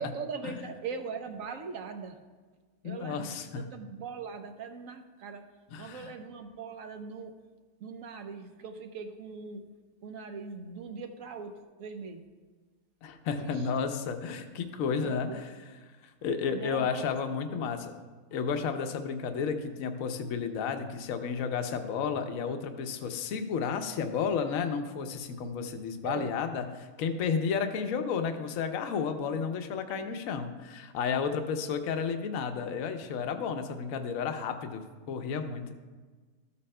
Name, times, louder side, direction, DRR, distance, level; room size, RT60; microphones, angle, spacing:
voice 1, 0.0-2.2 2.8-5.5 5.8-7.4 7.8-9.7 10.0-12.3 13.4-13.7 14.9-15.4 16.5-17.1 17.5-17.7 26.0-26.3 29.9-30.1, right 5 dB, 70° right, 7 dB, 1.1 m, -41 dB
voice 2, 2.8-3.7 5.7-6.1 13.0-15.4 16.0-17.8 18.3-35.7, left 6 dB, 70° left, 7 dB, 1.0 m, -32 dB
13.0 x 8.3 x 2.2 m, 1.4 s
omnidirectional pair, 1.6 m